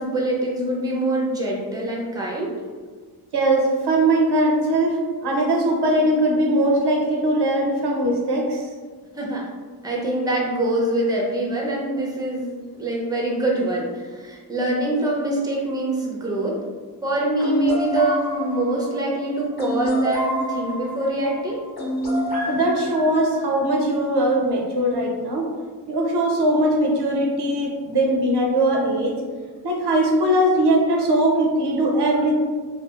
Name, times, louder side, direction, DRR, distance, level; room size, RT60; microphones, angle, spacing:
voice 1, 0.0-2.5 9.1-9.5 9.8-16.6 17.0-21.6, right 1 dB, 10° right, -3 dB, 0.5 m, -24 dB
voice 2, 3.3-8.6 22.5-25.5 25.9-29.2 29.6-32.3, right 1 dB, 85° right, 0 dB, 0.6 m, -20 dB
sound 1, 17.4-23.6, right 1 dB, 70° left, 1.0 m, -27 dB
2.6 x 2.3 x 2.4 m, 1.5 s
wide cardioid pair, 80°, 40 cm